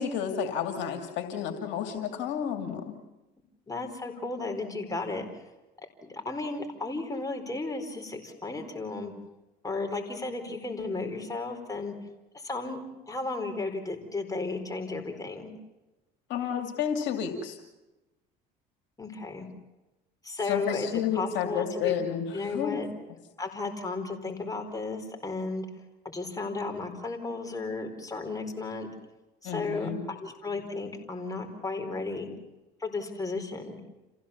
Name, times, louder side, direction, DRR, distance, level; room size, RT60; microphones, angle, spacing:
voice 1, 0.0-2.9 16.3-17.6 20.5-22.8 29.4-30.1, left 8 dB, 70° left, 5 dB, 2.6 m, -31 dB
voice 2, 3.7-5.2 6.0-9.1 9.6-11.9 12.4-15.5 19.0-19.5 20.2-21.9 22.3-22.9 23.4-25.6 26.0-28.9 29.4-32.3 32.8-33.8, left 3 dB, 20° left, 4 dB, 4.5 m, -34 dB
27.5 x 16.0 x 7.2 m, 1.0 s
supercardioid pair, 85°, 20 cm